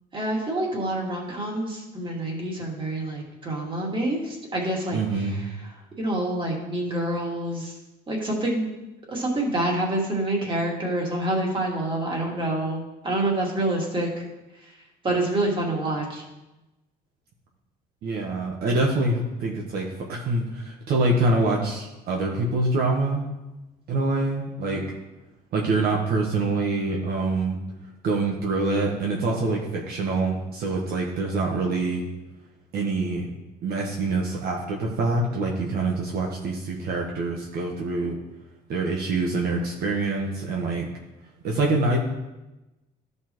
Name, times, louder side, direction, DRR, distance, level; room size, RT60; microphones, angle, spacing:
voice 1, 0.1-5.3 6.0-7.8 8.1-8.7 9.1-14.2 15.0-16.2, right 1 dB, 30° right, -2 dB, 2.3 m, -27 dB
voice 2, 4.9-5.5 18.0-23.2 23.9-24.8 25.5-27.6 28.0-32.0 32.7-33.3 33.6-38.2 38.7-40.9 41.4-42.0, right 2 dB, 65° right, -1 dB, 1.2 m, -25 dB
13.0 x 5.5 x 3.1 m, 1.0 s
cardioid pair, 110°, 17 cm